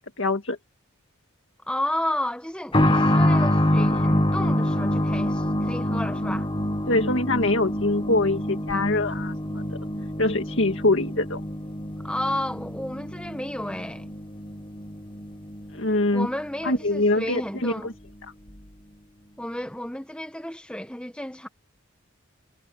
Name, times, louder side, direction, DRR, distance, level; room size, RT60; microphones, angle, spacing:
voice 1, 0.2-0.6 6.9-9.8 10.2-11.4 15.7-16.3 16.7-17.9, left 2 dB, 65° left, 2.0 m, -24 dB
voice 2, 1.7-6.5 12.0-14.1 16.1-17.9 19.4-21.5, left 1 dB, 5° left, 1.3 m, -32 dB
sound 1, 2.7-17.2 17.4-17.5 18.5-18.6, left 1 dB, 25° left, 1.4 m, -26 dB
head